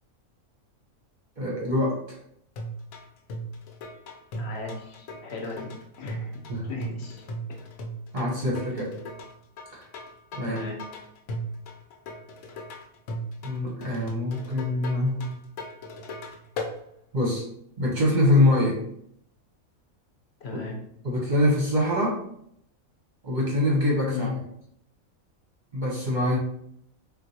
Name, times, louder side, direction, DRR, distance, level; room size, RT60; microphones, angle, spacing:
voice 1, 1.4-1.9 6.5-6.6 8.1-8.9 9.7-9.8 10.4-10.6 13.4-15.3 17.1-17.4 17.8-18.8 21.0-22.2 23.2-24.3 25.7-26.4, left 1 dB, 45° right, -4 dB, 0.7 m, -24 dB
sound 1, 2.6-16.8, equal, 80° left, 1.0 m, -37 dB
voice 2, 4.3-5.7 6.0-6.3 6.6-7.2 8.7-8.8 10.4-10.8 20.4-20.8 24.1-24.3, left 4 dB, 60° left, 1 dB, 0.8 m, -36 dB
3.7 x 2.4 x 2.7 m, 0.71 s
omnidirectional pair, 1.5 m